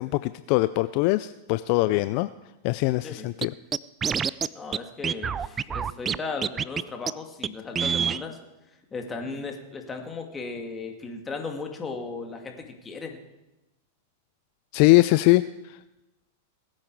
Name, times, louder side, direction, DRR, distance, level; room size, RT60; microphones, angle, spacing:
voice 1, 0.0-2.3 2.6-3.5 14.7-15.8, left 20 dB, 55° left, 14 dB, 0.4 m, -22 dB
Scratching (performance technique), 3.4-3.5 3.7-4.5 4.7-4.8 5.0-6.2 6.4-6.8 7.1-7.2 7.4-7.5 7.7-8.2, right 7 dB, 20° right, 0.4 m, -26 dB
voice 2, 4.5-8.4 8.9-13.2, left 4 dB, 20° left, 3 dB, 2.2 m, -36 dB
20.0 x 8.8 x 4.7 m, 0.99 s
hypercardioid pair, 120°, 0 cm